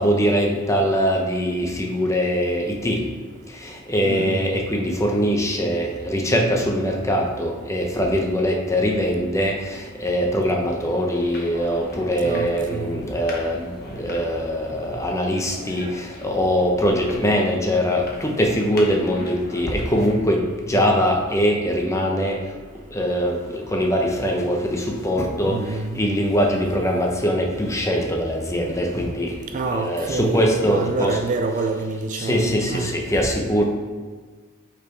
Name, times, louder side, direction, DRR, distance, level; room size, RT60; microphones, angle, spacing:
voice 1, 0.0-3.0 3.5-22.4 22.9-29.4 29.7-31.2 32.1-33.7, equal, 15° left, 1 dB, 0.8 m, -22 dB
voice 2, 4.0-4.5 12.2-13.0 25.4-26.0 29.5-32.9, right 3 dB, 35° right, 5 dB, 0.4 m, -27 dB
sound 1, 10.8-20.2, left 1 dB, 45° left, 1.1 m, -40 dB
5.7 x 4.2 x 4.5 m, 1.5 s
head